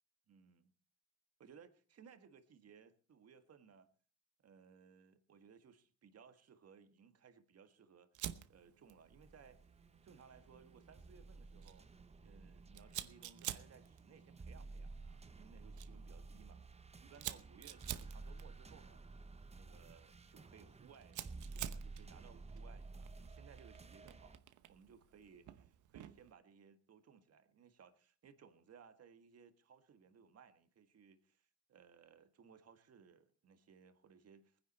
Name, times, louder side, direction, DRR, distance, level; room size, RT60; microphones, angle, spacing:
voice 1, 0.3-0.7 1.4-3.9 4.4-9.6 10.0-11.9 12.2-16.6 17.0-19.0 19.5-24.4 24.7-34.6, right 6 dB, 55° right, 1.7 m, -62 dB
Fire, 8.1-26.3, right 12 dB, 75° right, 0.9 m, -52 dB
sound 1, 9.1-24.4, right 3 dB, 20° right, 0.9 m, -53 dB
20.0 x 10.0 x 4.3 m
cardioid pair, 90°, 30 cm